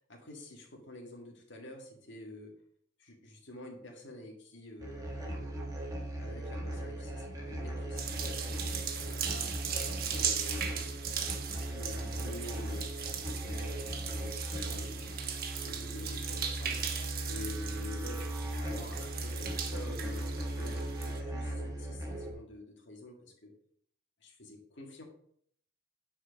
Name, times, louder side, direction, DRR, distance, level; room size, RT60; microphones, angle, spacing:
voice 1, 0.1-2.6 3.0-5.5 6.2-9.6 9.8-10.9 11.7-15.2 15.6-16.8 17.3-20.3 20.6-23.5 24.2-25.0, left 1 dB, 60° left, 1 dB, 2.1 m, -48 dB
sound 1, 4.8-22.3, right 1 dB, 15° right, 1.4 m, -38 dB
sound 2, 8.0-21.2, right 7 dB, 50° right, 1.0 m, -38 dB
9.6 x 4.6 x 5.3 m, 0.65 s
head